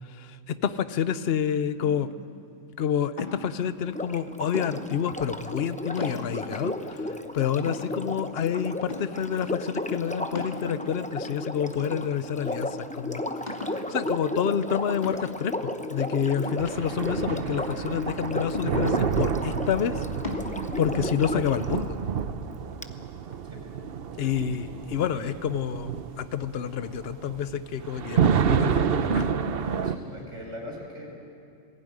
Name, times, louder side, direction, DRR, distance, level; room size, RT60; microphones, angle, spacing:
voice 1, 0.2-2.1 2.8-13.2 13.7-20.0 20.8-22.0 24.2-29.3, left 8 dB, 55° left, 13 dB, 0.9 m, -28 dB
sound 1, 1.8-2.3 3.2-3.6 4.5-5.0 5.6-5.7 6.0-6.6 7.2-7.3 7.7-8.4 8.9-9.3 10.4-11.1 11.8-12.4 12.8-12.9 13.5-13.9 15.0-15.5 16.5-17.4 18.5-19.1 20.2-20.5, left 3 dB, 35° left, 2.4 m, -38 dB
Sink (filling or washing), 3.8-21.6 22.8-22.9, left 1 dB, 10° left, 0.6 m, -34 dB
sound 2, 16.6-30.0, right 7 dB, 55° right, 0.9 m, -29 dB
voice 2, 29.8-31.1, equal, 70° right, -1 dB, 5.7 m, -41 dB
21.0 x 15.5 x 9.6 m, 2.5 s
omnidirectional pair, 1.3 m